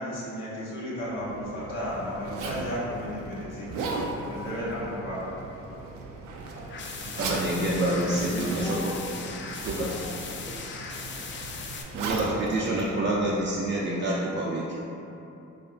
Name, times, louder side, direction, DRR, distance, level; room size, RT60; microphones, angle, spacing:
voice 1, 0.0-3.8 4.1-5.3, equal, 85° left, -8 dB, 1.1 m, -34 dB
Zipper (clothing), 1.0-13.7, right 3 dB, 90° right, 0.5 m, -37 dB
sound 1, 6.7-11.8, left 4 dB, 40° left, 0.4 m, -38 dB
voice 2, 7.2-8.9 9.7-9.9 11.9-14.8, right 1 dB, 40° right, -5 dB, 0.4 m, -27 dB
voice 3, 8.3-9.3 9.7-10.6 12.2-12.5, left 1 dB, 65° left, -6 dB, 1.1 m, -39 dB
4.9 x 2.4 x 2.5 m, 2.9 s
cardioid pair, 90°, 30 cm